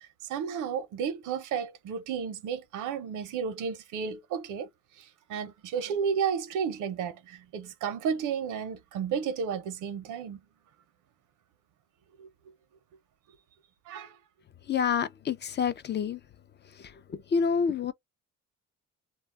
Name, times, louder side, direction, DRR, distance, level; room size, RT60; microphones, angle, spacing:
voice 1, 0.3-4.7 5.3-10.4 12.2-12.3 13.9-14.1, right 7 dB, 85° right, 0.7 m, -32 dB
voice 2, 14.7-16.2 17.1-17.9, left 6 dB, 35° left, 0.4 m, -27 dB
2.2 x 2.0 x 3.3 m
cardioid pair, 90°, 30 cm